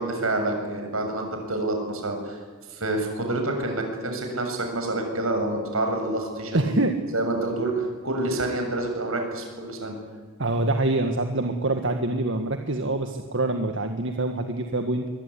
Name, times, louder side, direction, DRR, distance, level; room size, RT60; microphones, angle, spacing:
voice 1, 0.0-2.4 2.7-6.9 7.1-10.0, right 2 dB, 85° right, 4 dB, 7.2 m, -28 dB
voice 2, 6.5-6.9 10.4-15.1, right 2 dB, 65° right, 5 dB, 1.8 m, -25 dB
24.0 x 23.0 x 9.9 m, 1.5 s
head